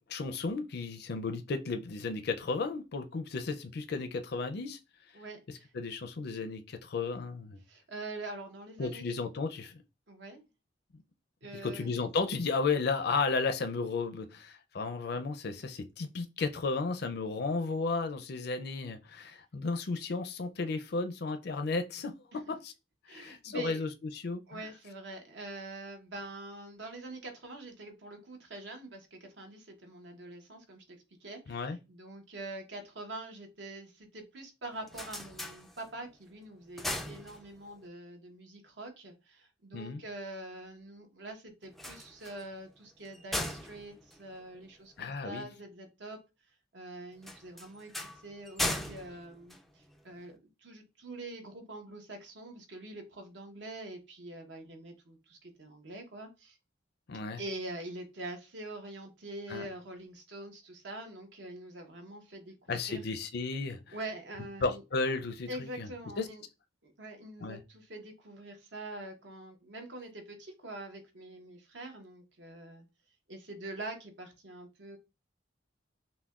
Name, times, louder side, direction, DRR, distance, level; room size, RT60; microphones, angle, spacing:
voice 1, 0.1-4.8 5.7-7.6 8.8-9.8 11.6-22.7 23.1-23.9 24.2-24.6 31.5-31.8 39.7-40.0 45.0-45.4 57.1-57.4 59.5-59.6 62.7-63.9 64.6-65.9 66.2-66.3 67.4-67.6, left 4 dB, 60° left, 0.5 m, -34 dB
voice 2, 5.1-5.7 7.7-9.0 10.1-10.4 11.4-12.0 22.3-22.4 23.1-23.8 24.5-46.2 46.7-47.9 48.2-56.6 57.2-63.0 63.9-64.8 65.5-66.4 66.8-72.9 73.3-75.0, right 2 dB, 65° right, 0.9 m, -45 dB
sound 1, 34.6-36.2 36.5-37.9 41.6-45.1 47.2-50.2, left 1 dB, ahead, 0.3 m, -39 dB
5.7 x 2.2 x 2.4 m
head